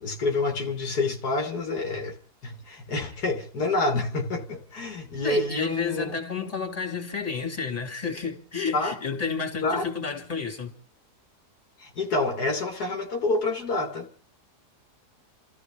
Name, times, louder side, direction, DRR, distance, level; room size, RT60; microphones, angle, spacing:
voice 1, 0.0-2.2 2.4-6.1 8.7-8.9 9.6-9.9 11.8-14.1, left 2 dB, 70° left, 1.9 m, -28 dB
voice 2, 5.2-10.7, left 5 dB, 25° left, 2.4 m, -31 dB
29.0 x 14.0 x 3.4 m
omnidirectional pair, 1.7 m